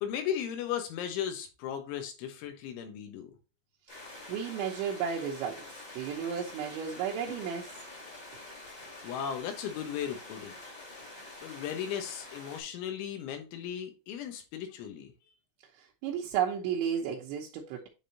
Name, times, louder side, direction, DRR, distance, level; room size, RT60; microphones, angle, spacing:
voice 1, 0.0-3.3 9.0-10.6 11.4-15.1, left 9 dB, 75° left, 3.3 m, -36 dB
sound 1, 3.9-12.6, left 2 dB, 30° left, 1.6 m, -47 dB
voice 2, 4.3-7.7 15.7-17.9, right 8 dB, 75° right, 3.0 m, -33 dB
10.0 x 3.6 x 2.8 m
omnidirectional pair, 5.8 m